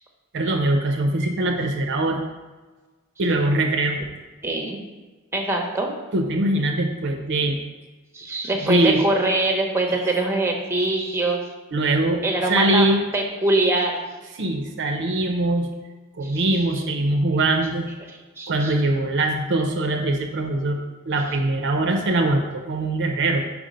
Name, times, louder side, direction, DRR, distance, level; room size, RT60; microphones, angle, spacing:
voice 1, 0.3-2.2 3.2-4.0 6.1-7.6 8.6-9.0 11.7-13.0 14.3-15.7 16.2-17.9 18.5-23.4, right 2 dB, 55° right, 4 dB, 0.6 m, -22 dB
voice 2, 4.4-4.8 5.3-5.9 8.1-11.4 12.2-14.0 16.2-16.5 18.4-18.7, right 2 dB, 10° right, 2 dB, 0.8 m, -23 dB
5.1 x 4.9 x 5.1 m, 1.3 s
head